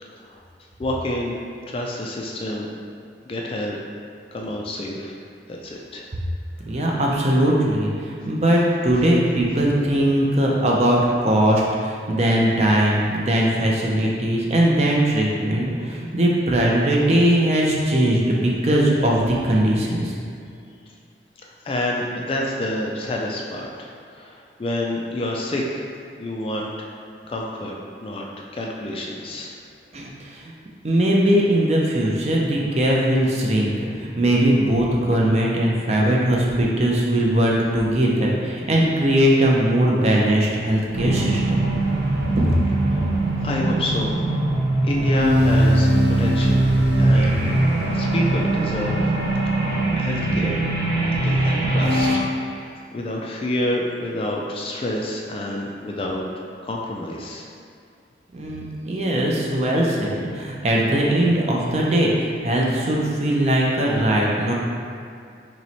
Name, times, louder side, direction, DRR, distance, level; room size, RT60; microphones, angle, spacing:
voice 1, 0.8-1.4 1.7-2.7 3.3-3.8 4.3-5.1 5.5-6.0 6.7-7.0 21.6-25.8 26.2-26.9 27.3-27.8 28.0-28.2 28.5-29.5 42.9-44.1 44.8-46.7 47.0-47.6 47.9-49.1 50.0-50.6 51.2-56.2 56.6-57.5, left 1 dB, 30° left, -1 dB, 0.3 m, -28 dB
voice 2, 6.6-11.0 11.2-20.1 29.9-30.5 30.8-41.7 42.4-42.6 58.3-64.5, right 1 dB, 35° right, -2 dB, 0.5 m, -20 dB
sound 1, 40.9-52.2, right 1 dB, 70° right, 0.9 m, -21 dB
3.0 x 3.0 x 4.0 m, 2.4 s
head